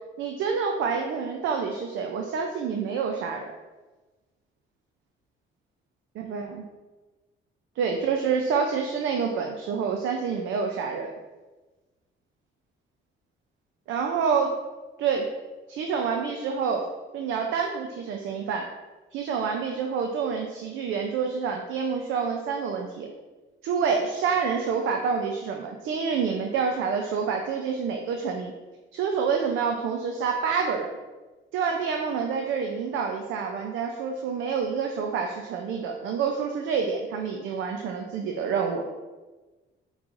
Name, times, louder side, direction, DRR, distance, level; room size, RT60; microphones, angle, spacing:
voice 1, 0.2-3.5 6.2-6.6 7.8-11.1 13.9-14.6 15.0-15.3 15.7-16.9 17.1-18.7 19.1-23.1 23.6-28.5 28.9-30.9 31.5-38.8, right 6 dB, 80° right, 3 dB, 0.5 m, -27 dB
5.4 x 3.1 x 2.5 m, 1.2 s
cardioid pair, 90°, 20 cm